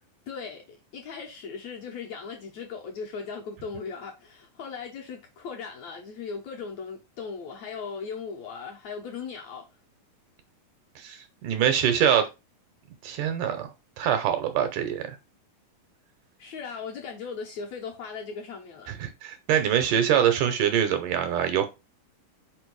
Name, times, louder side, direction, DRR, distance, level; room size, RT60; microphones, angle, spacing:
voice 1, 0.3-9.7 16.4-18.9, left 5 dB, 65° left, 2.0 m, -38 dB
voice 2, 11.0-12.3 13.0-13.7 14.0-15.2 18.9-21.7, right 9 dB, 75° right, 2.1 m, -24 dB
5.3 x 4.4 x 4.6 m
omnidirectional pair, 4.1 m